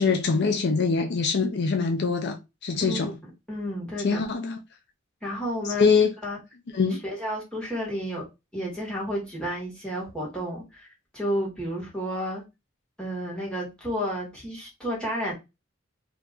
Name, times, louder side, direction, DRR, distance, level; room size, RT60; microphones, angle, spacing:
voice 1, 0.0-2.4 2.6-3.2 4.0-4.6 5.8-6.1 6.7-7.0, left 5 dB, 55° left, 0.5 m, -23 dB
voice 2, 2.8-4.3 5.2-6.0 6.2-6.4 7.0-8.2 8.5-10.9 11.1-12.4 13.0-15.3, equal, 5° left, 1.6 m, -31 dB
2.9 x 2.5 x 3.5 m
head